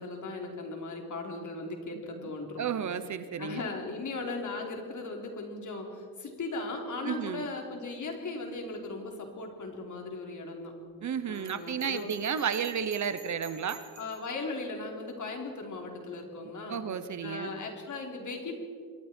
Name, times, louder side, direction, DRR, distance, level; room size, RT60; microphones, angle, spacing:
voice 1, 0.0-2.6 3.4-10.7 11.3-12.1 14.0-16.8 17.2-18.5, left 3 dB, 50° left, 2 dB, 3.5 m, -38 dB
voice 2, 2.6-3.7 7.0-7.5 11.0-13.8 16.7-17.5, right 7 dB, 50° right, 12 dB, 0.9 m, -32 dB
Bell, 11.3-14.3, right 6 dB, 80° right, 4.8 m, -52 dB
27.0 x 22.0 x 4.5 m, 2.2 s
wide cardioid pair, 170°, 37 cm